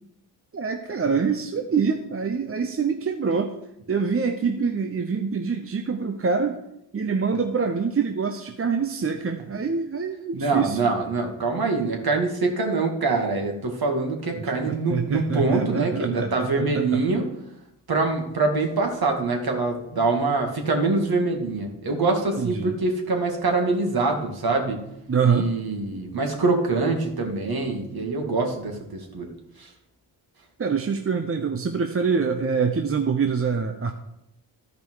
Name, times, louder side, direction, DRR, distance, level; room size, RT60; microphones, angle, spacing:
voice 1, 0.5-3.5 3.9-6.6 6.9-10.9 14.7-16.9 22.4-22.8 25.1-25.5 30.6-33.9, right 5 dB, 30° right, 5 dB, 0.8 m, -25 dB
voice 2, 10.3-17.3 17.9-24.8 25.2-29.3 29.6-29.7, right 3 dB, 55° right, 2 dB, 2.3 m, -24 dB
12.5 x 5.1 x 4.7 m, 0.83 s
supercardioid pair, 50°, 45 cm